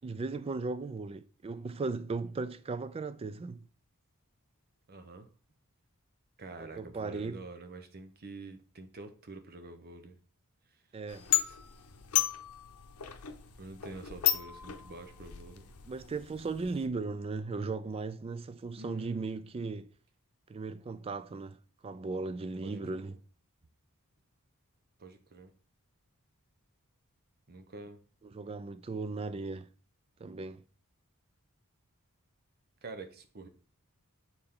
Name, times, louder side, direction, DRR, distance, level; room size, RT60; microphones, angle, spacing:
voice 1, 0.0-3.7 6.8-7.4 10.9-11.3 15.9-19.9 20.5-21.6 21.8-23.1 28.2-29.7 30.2-30.6, right 3 dB, 25° right, 0.3 m, -37 dB
voice 2, 4.9-5.3 6.4-10.2 11.4-11.6 13.6-15.7 18.8-19.3 22.6-23.2 25.0-25.5 27.5-28.0 32.8-33.5, right 2 dB, 45° right, 0.8 m, -47 dB
sound 1, 11.1-16.9, left 13 dB, 90° left, 0.7 m, -34 dB
6.7 x 4.1 x 3.7 m
head